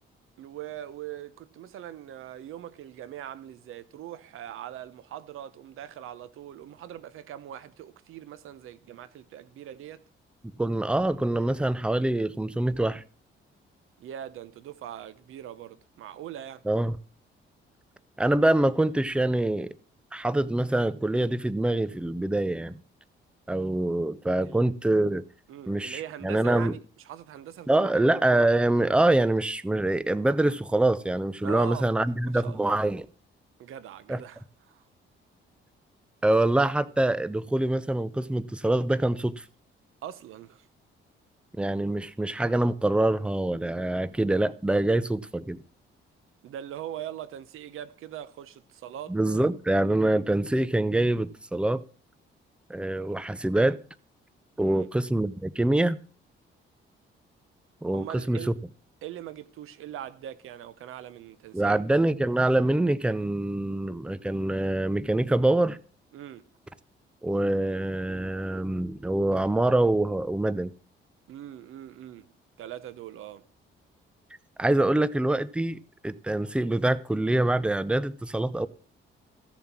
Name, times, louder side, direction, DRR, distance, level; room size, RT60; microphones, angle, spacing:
voice 1, 0.4-10.0 14.0-16.6 24.4-24.6 25.5-26.8 27.0-28.0 31.4-31.9 32.2-32.8 33.6-34.9 40.0-40.7 46.4-49.2 54.6-54.9 57.9-58.5 59.0-61.8 66.1-66.5 71.3-72.3 72.6-73.5, right 11 dB, 85° right, 1.0 m, -41 dB
voice 2, 10.6-13.0 16.7-17.0 18.2-19.7 20.1-22.8 23.5-25.2 25.7-26.7 27.7-33.0 34.1-34.2 36.2-39.4 41.6-45.6 49.1-51.8 52.7-53.8 54.6-56.0 57.8-58.5 61.5-65.8 67.2-70.7 74.6-78.7, right 1 dB, 5° right, 0.6 m, -25 dB
15.0 x 7.2 x 6.0 m
cardioid pair, 110°, 21 cm